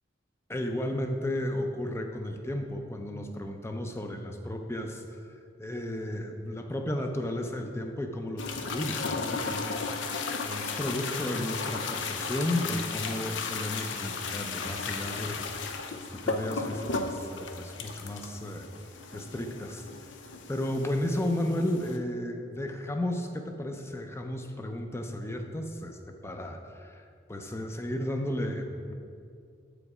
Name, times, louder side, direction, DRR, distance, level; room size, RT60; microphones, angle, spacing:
voice 1, 0.5-5.3 5.6-9.9 10.4-18.7 19.1-20.2 20.5-27.0 27.3-28.9, left 1 dB, 15° left, 4 dB, 0.5 m, -33 dB
sound 1, 8.4-22.0, left 4 dB, 80° left, 0.5 m, -35 dB
7.6 x 5.1 x 4.8 m, 2.4 s
head